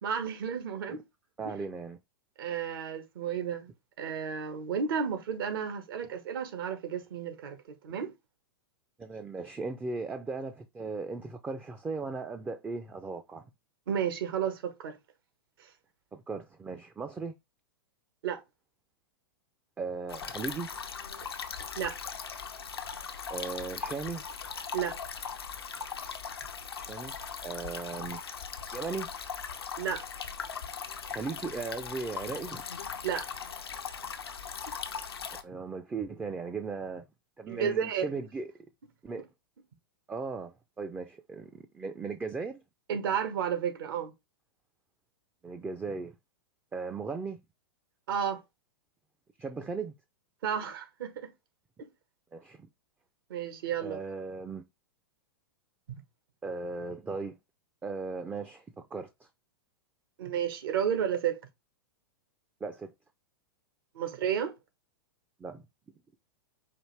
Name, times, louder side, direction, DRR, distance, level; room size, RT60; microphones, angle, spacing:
voice 1, 0.0-1.0 1.4-1.5 2.4-3.7 4.0-7.6 7.8-8.1 13.9-15.0 18.2-18.4 21.8-22.0 24.7-25.0 29.8-30.0 33.0-33.3 37.5-38.1 42.9-44.1 48.1-48.4 50.4-51.3 51.8-51.9 53.3-54.0 60.2-61.4 63.9-64.5, right 8 dB, 65° right, 1.2 m, -32 dB
voice 2, 1.4-2.0 9.0-13.4 16.1-17.3 19.8-20.7 23.3-24.2 26.7-27.1 27.4-28.2 28.7-29.1 31.1-32.6 35.4-37.0 37.4-38.5 39.0-39.3 40.1-42.6 45.4-46.2 46.7-47.4 49.4-49.9 52.3-52.7 53.8-54.6 56.4-57.4 57.8-59.3 62.6-62.9 65.4-65.6, right 4 dB, 10° right, 0.4 m, -37 dB
sound 1, 20.1-35.4, left 6 dB, 90° left, 0.7 m, -39 dB
4.9 x 2.5 x 3.2 m
hypercardioid pair, 110°, 13 cm